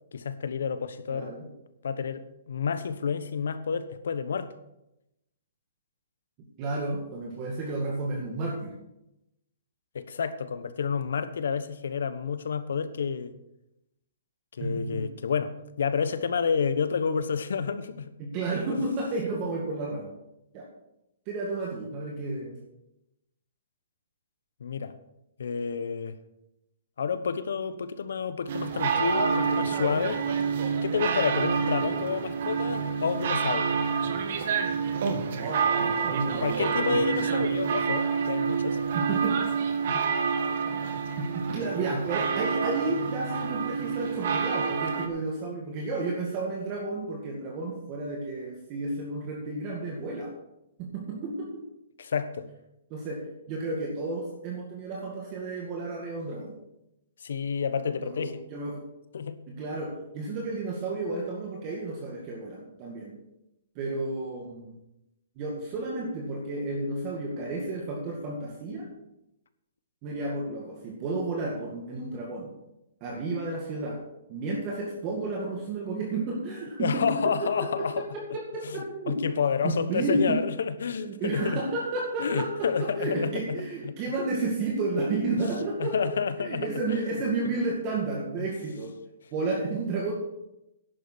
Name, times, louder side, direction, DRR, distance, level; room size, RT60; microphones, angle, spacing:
voice 1, 0.1-1.4 1.8-4.5 9.9-13.3 14.6-18.1 18.7-18.8 24.6-25.0 25.4-26.2 27.0-30.2 30.8-33.7 36.4-38.8 39.8-40.0 40.9-41.0 52.0-52.5 57.2-58.4 59.1-59.4 76.8-78.1 78.6-81.6 82.2-83.3 83.8-84.0 85.8-87.0 88.4-88.5, left 6 dB, 75° left, 1.1 m, -30 dB
voice 2, 1.1-1.5 6.6-8.7 14.6-15.0 18.2-20.1 20.5-20.6 21.3-22.6 35.4-36.6 38.9-39.4 41.2-50.3 50.8-51.6 52.9-53.2 53.5-56.5 58.0-58.8 59.5-63.2 63.8-64.8 65.4-68.9 70.0-72.5 73.0-74.0 74.3-79.2 79.6-80.4 81.0-88.9 89.3-90.1, right 2 dB, 25° right, 2.1 m, -32 dB
sound 1, 28.5-45.1, right 6 dB, 50° right, 1.7 m, -28 dB
11.0 x 8.7 x 6.3 m
hypercardioid pair, 165°, 0 cm